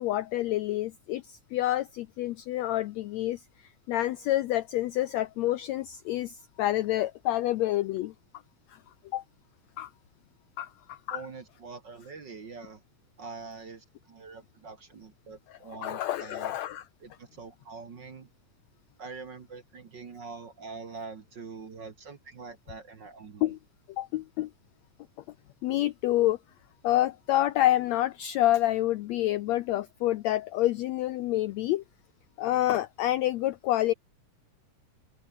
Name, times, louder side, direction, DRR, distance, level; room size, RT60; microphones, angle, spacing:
voice 1, 0.0-3.4 3.9-8.1 8.7-8.8 9.1-9.2 9.8-9.9 10.6-11.2 15.5-16.8 23.4-23.6 23.9-24.5 25.6-26.4 26.8-31.8 32.4-33.9, left 14 dB, 90° left, 1.5 m, -28 dB
voice 2, 11.1-12.8 13.2-16.5 17.0-18.3 19.0-23.5, right 4 dB, 40° right, 1.9 m, -44 dB
omnidirectional pair, 3.9 m